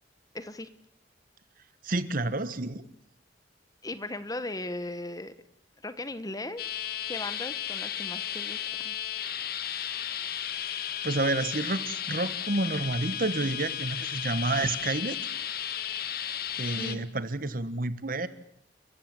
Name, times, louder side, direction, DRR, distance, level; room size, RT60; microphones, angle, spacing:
voice 1, 0.3-0.7 3.8-5.3 5.8-6.6 7.1-8.9 16.7-17.1, left 2 dB, 20° left, 12 dB, 1.1 m, -37 dB
voice 2, 1.8-2.9 11.0-15.2 16.6-18.3, right 2 dB, 50° right, 13 dB, 1.3 m, -29 dB
sound 1, 6.6-17.0, left 10 dB, 55° left, 1.4 m, -34 dB
30.0 x 15.5 x 7.8 m, 0.70 s
head